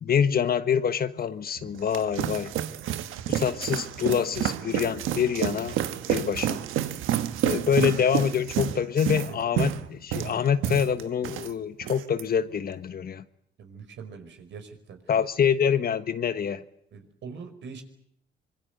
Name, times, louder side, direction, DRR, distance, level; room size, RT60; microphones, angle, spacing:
voice 1, 0.0-2.5 3.3-5.8 6.1-6.6 7.4-13.2 15.1-16.6, left 7 dB, 50° left, 1.4 m, -26 dB
sound 1, 1.6-11.5 11.8-12.2, right 11 dB, 85° right, 1.4 m, -29 dB
voice 2, 13.6-15.0 16.9-17.8, right 5 dB, 70° right, 5.1 m, -42 dB
25.5 x 23.0 x 8.0 m
cardioid pair, 90°, 20 cm